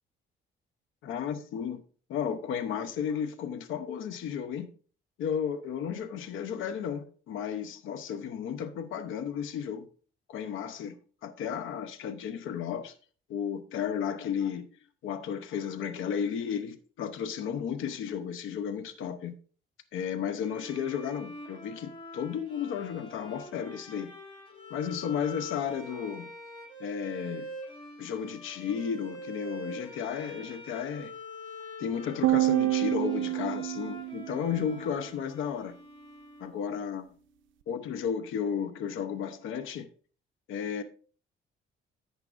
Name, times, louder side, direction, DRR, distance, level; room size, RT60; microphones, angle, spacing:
voice 1, 1.0-1.8 2.1-4.7 5.2-9.9 10.3-11.0 11.2-12.9 13.3-14.7 15.0-19.3 19.9-24.1 24.7-26.3 26.8-27.5 28.0-31.1 31.8-35.8 36.4-37.1 37.7-39.9 40.5-40.8, left 8 dB, 85° left, 0.9 m, -33 dB
Bowed string instrument, 20.4-36.9, left 1 dB, 25° left, 2.8 m, -45 dB
sound 1, 32.2-34.7, right 17 dB, 75° right, 0.5 m, -27 dB
11.0 x 8.2 x 2.5 m
cardioid pair, 90°, 20 cm